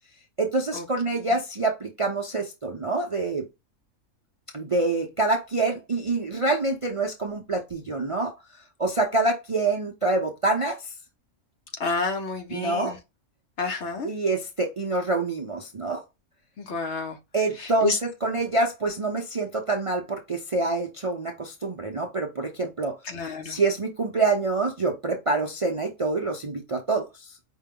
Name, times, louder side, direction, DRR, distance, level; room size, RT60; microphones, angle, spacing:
voice 1, 0.4-3.5 4.5-8.4 8.8-10.9 12.5-13.0 14.0-16.0 17.3-23.0 23.4-27.3, right 3 dB, 40° right, 0.5 m, -26 dB
voice 2, 11.8-13.0 13.6-14.1 16.6-17.2 17.6-18.0 23.0-23.6, left 3 dB, 55° left, 1.1 m, -29 dB
5.3 x 2.2 x 3.6 m
omnidirectional pair, 1.5 m